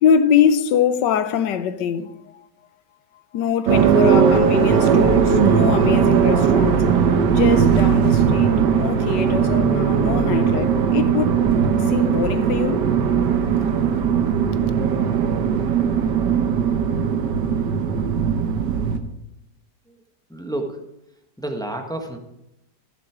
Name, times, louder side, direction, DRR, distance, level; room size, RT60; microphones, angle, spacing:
voice 1, 0.0-2.1 3.3-6.9 7.3-11.4 11.9-12.9, left 8 dB, 80° left, 1.4 m, -23 dB
sound 1, 3.7-19.0, right 7 dB, 75° right, 1.6 m, -18 dB
voice 2, 20.3-20.8 21.4-22.2, right 1 dB, 5° left, 0.9 m, -29 dB
14.0 x 7.3 x 4.9 m
omnidirectional pair, 1.9 m